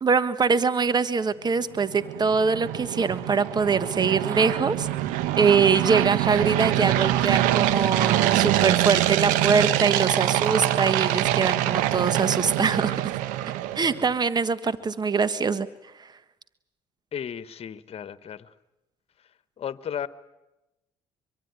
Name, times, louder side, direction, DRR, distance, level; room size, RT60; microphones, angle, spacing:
voice 1, 0.0-4.9 5.4-13.0 13.7-15.7 16.0-16.1, right 5 dB, 30° right, 13 dB, 1.5 m, -23 dB
sound 1, 1.8-14.1, right 14 dB, 75° right, 1.4 m, -24 dB
voice 2, 17.1-18.5 19.6-20.1, left 8 dB, 45° left, 14 dB, 1.4 m, -34 dB
24.5 x 23.5 x 9.7 m, 0.98 s
hypercardioid pair, 65°, 14 cm